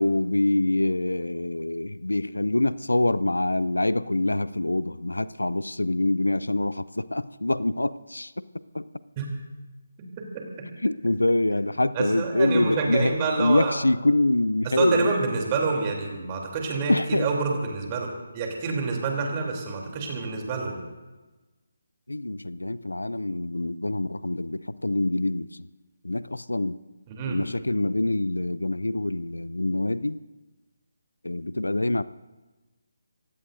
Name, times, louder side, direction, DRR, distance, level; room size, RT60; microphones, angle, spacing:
voice 1, 0.0-8.4 8.7-8.9 10.8-15.2 16.9-17.3 22.1-25.5 26.0-26.8 27.2-30.2 31.2-32.0, left 2 dB, 85° left, 18 dB, 0.4 m, -25 dB
voice 2, 11.9-13.7 14.7-18.1 18.3-20.8 27.1-27.4, right 4 dB, 25° right, 1 dB, 3.1 m, -27 dB
27.0 x 16.0 x 2.6 m, 1.2 s
figure-of-eight pair, 150°, 0 cm